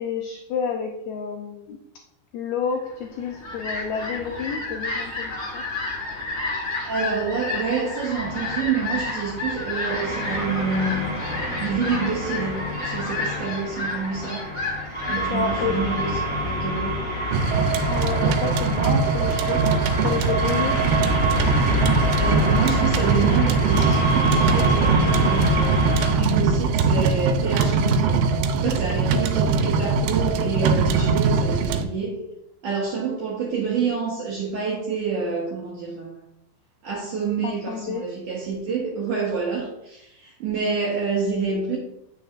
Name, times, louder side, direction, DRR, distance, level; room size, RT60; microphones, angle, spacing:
voice 1, 0.0-1.8 2.3-5.6 15.1-15.8 17.9-19.6 20.0-20.8 29.1-29.2 37.4-38.0, left 6 dB, 90° left, 2 dB, 2.1 m, -29 dB
Fowl, 3.0-17.0, left 3 dB, 25° left, 1.6 m, -31 dB
voice 2, 6.8-11.1 11.6-14.5 15.1-17.0 22.1-28.3 28.5-32.2 32.6-36.2 36.8-41.8, right 5 dB, 70° right, -5 dB, 1.9 m, -28 dB
sound 1, 8.1-26.1, left 1 dB, 5° right, 0.7 m, -27 dB
sound 2, 17.3-31.8, right 5 dB, 90° right, 3.0 m, -21 dB
9.1 x 6.3 x 2.4 m, 0.84 s
omnidirectional pair, 5.2 m